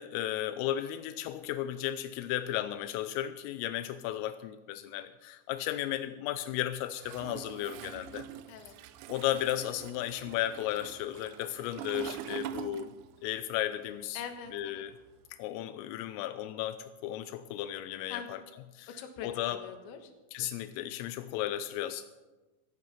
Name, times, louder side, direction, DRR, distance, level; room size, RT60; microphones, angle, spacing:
voice 1, 0.0-8.3 9.1-12.9 13.2-14.2 14.5-14.9 15.3-18.4 18.7-18.9 19.2-19.6 20.3-22.0, left 12 dB, 85° left, 11 dB, 3.3 m, -34 dB
Toilet flush, 7.0-13.4 13.7-15.3, right 10 dB, 85° right, 3.2 m, -44 dB
voice 2, 14.2-14.8 18.1-18.4 19.0-20.1, left 7 dB, 70° left, 6 dB, 3.5 m, -43 dB
16.5 x 13.5 x 5.7 m, 1.2 s
omnidirectional pair, 5.8 m